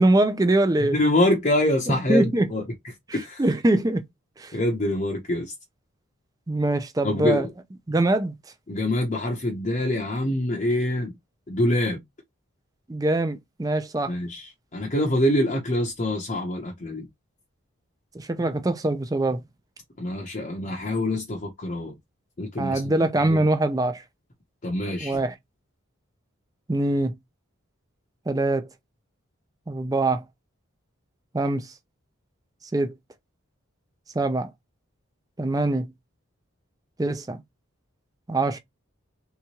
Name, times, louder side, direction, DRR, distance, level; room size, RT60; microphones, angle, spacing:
voice 1, 0.0-1.0 1.9-2.5 3.4-4.0 4.4-4.5 6.5-7.5 7.9-8.3 12.9-14.1 18.1-19.4 22.6-24.0 25.0-25.3 26.7-27.1 28.3-28.7 29.7-30.2 31.3-31.7 32.7-32.9 34.1-34.5 35.4-35.9 37.0-37.4 38.3-38.6, right 2 dB, 15° right, 0.4 m, -23 dB
voice 2, 0.9-2.6 3.1-3.4 4.5-5.5 7.0-7.5 8.7-11.1 11.5-12.0 14.1-17.1 20.0-22.0 22.4-22.9 23.2-23.5 24.6-25.2, left 1 dB, 35° left, 0.7 m, -25 dB
3.4 x 2.9 x 2.8 m
head